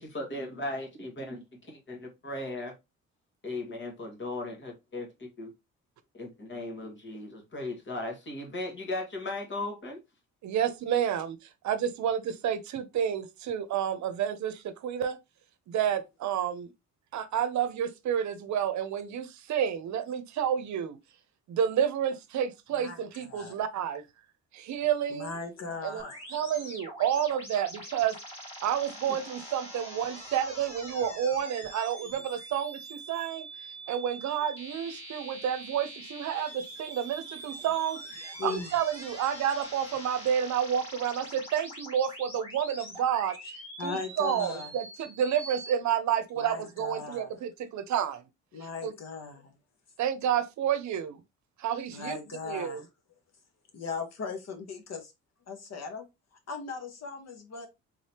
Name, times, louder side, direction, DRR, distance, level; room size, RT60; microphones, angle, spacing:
voice 1, 0.0-2.7 3.4-5.5 6.1-10.0, left 2 dB, 40° left, 1.7 m, -37 dB
voice 2, 10.4-11.4 11.6-15.2 15.7-16.7 17.1-21.0 21.5-24.0 24.5-25.3 25.8-26.0 26.3-28.1 28.6-33.5 33.9-43.4 43.8-48.2 48.8-48.9 50.0-51.2 51.6-52.2 52.5-52.8, right 9 dB, 70° right, 0.7 m, -30 dB
voice 3, 22.8-23.6 25.1-26.2 29.1-29.2 38.4-38.7 43.8-44.7 46.4-47.3 48.5-49.5 51.9-52.8 53.7-55.1 55.5-56.1 56.5-57.7, left 4 dB, 60° left, 1.2 m, -38 dB
sound 1, 26.0-45.7, right 1 dB, 20° left, 1.9 m, -44 dB
3.8 x 3.2 x 2.8 m
cardioid pair, 90°, 30 cm